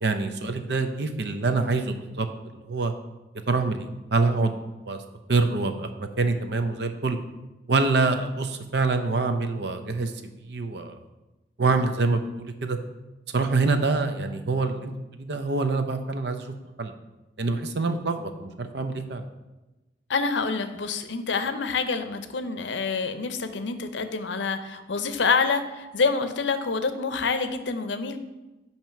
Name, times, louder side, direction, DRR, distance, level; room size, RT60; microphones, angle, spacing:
voice 1, 0.0-2.3 2.5-2.9 3.5-4.5 4.9-5.0 5.3-7.2 7.7-10.1 10.5-11.0 11.6-12.8 13.3-14.9 15.2-16.5 16.8-16.9 17.4-19.2, right 3 dB, 65° right, 8 dB, 0.6 m, -25 dB
voice 2, 20.1-28.2, left 4 dB, 80° left, 10 dB, 0.6 m, -27 dB
9.0 x 3.0 x 5.7 m, 1.1 s
head